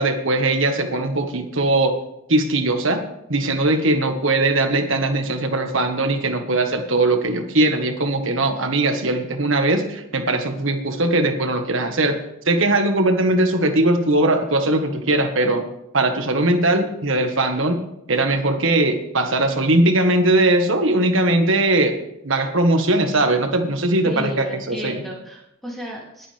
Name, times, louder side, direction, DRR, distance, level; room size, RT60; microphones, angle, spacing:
voice 1, 0.0-2.0 2.3-3.0 3.3-12.2 12.4-15.6 15.9-17.8 18.1-22.0 22.2-25.0, right 2 dB, 65° right, 5 dB, 1.6 m, -20 dB
voice 2, 24.0-26.3, equal, ahead, -5 dB, 3.0 m, -33 dB
19.5 x 8.7 x 3.5 m, 0.81 s
head